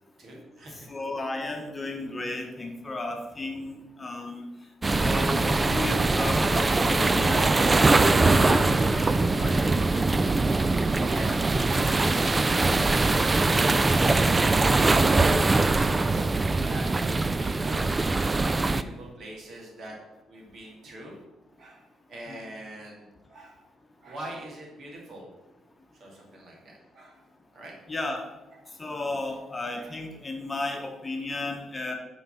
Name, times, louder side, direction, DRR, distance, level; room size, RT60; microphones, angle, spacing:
voice 1, 0.2-0.9 10.8-14.3 14.6-16.9 17.3-17.9 18.7-20.0 20.3-21.2 21.6-23.6 24.0-25.3 26.0-27.2 27.5-27.7 28.5-28.7 29.1-29.2 29.8-30.0, right 1 dB, 60° right, -1 dB, 2.0 m, -43 dB
voice 2, 0.9-3.7 4.0-4.4 5.0-9.1 9.4-9.6 27.9-28.2 28.8-31.9, left 2 dB, 25° left, 2 dB, 1.0 m, -33 dB
sound 1, 4.8-18.8, right 3 dB, 25° right, 0.3 m, -22 dB
5.8 x 4.0 x 5.7 m, 1.1 s
cardioid pair, 90°, 0 cm